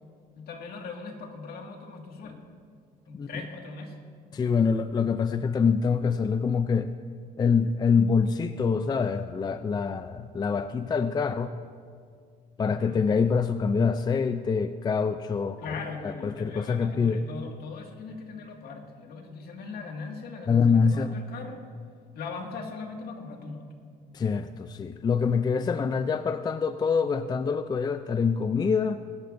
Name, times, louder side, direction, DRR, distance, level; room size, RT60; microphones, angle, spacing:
voice 1, 0.4-2.4 3.1-4.0 12.6-13.0 15.6-21.6 22.1-23.7, left 4 dB, 65° left, 2 dB, 2.0 m, -39 dB
voice 2, 4.3-6.9 7.4-11.5 12.6-15.6 16.0-17.2 20.5-21.1 24.1-29.0, left 5 dB, 25° left, 10 dB, 0.4 m, -25 dB
24.5 x 12.5 x 2.6 m, 2.1 s
cardioid pair, 110°, 17 cm